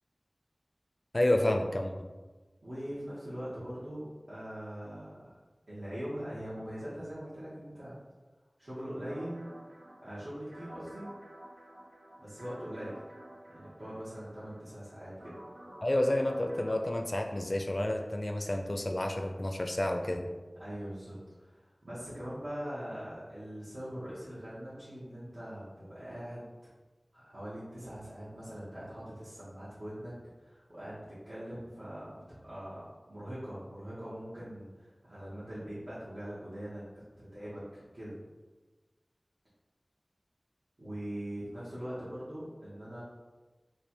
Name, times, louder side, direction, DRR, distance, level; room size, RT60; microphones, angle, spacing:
voice 1, 1.1-1.9 15.8-20.3, left 1 dB, 45° left, 4 dB, 0.4 m, -30 dB
voice 2, 2.6-4.0 4.3-5.3 5.7-7.9 8.6-9.5 10.0-11.1 12.2-13.0 13.5-15.3 20.6-26.5 27.1-30.1 30.4-38.2 40.8-43.0, equal, 65° right, -12 dB, 1.3 m, -42 dB
sound 1, 9.1-16.9, right 1 dB, 90° right, 0.6 m, -51 dB
3.3 x 2.4 x 4.3 m, 1.3 s
wide cardioid pair, 45°, 0 cm